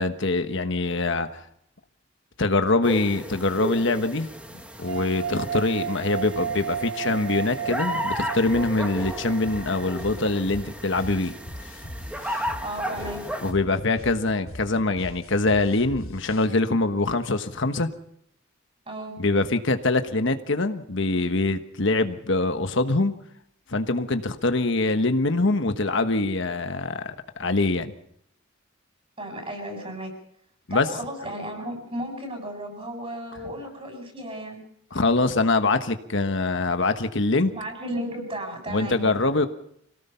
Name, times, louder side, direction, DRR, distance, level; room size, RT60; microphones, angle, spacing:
voice 1, 0.0-1.4 2.4-4.3 4.8-11.4 13.4-17.9 19.2-23.1 23.7-27.9 30.7-30.9 34.9-37.5 38.7-39.5, left 2 dB, 65° left, 8 dB, 1.3 m, -24 dB
sound 1, 2.8-13.5, equal, 5° right, 2.0 m, -34 dB
sound 2, 4.9-10.1, right 8 dB, 65° right, 0.8 m, -33 dB
sound 3, 8.5-16.5, left 1 dB, 80° left, 3.2 m, -41 dB
voice 2, 12.6-13.2 18.9-19.2 29.2-30.1 30.7-34.6 37.5-39.1, right 1 dB, 30° right, 4 dB, 7.4 m, -34 dB
26.0 x 18.0 x 5.7 m, 0.72 s
head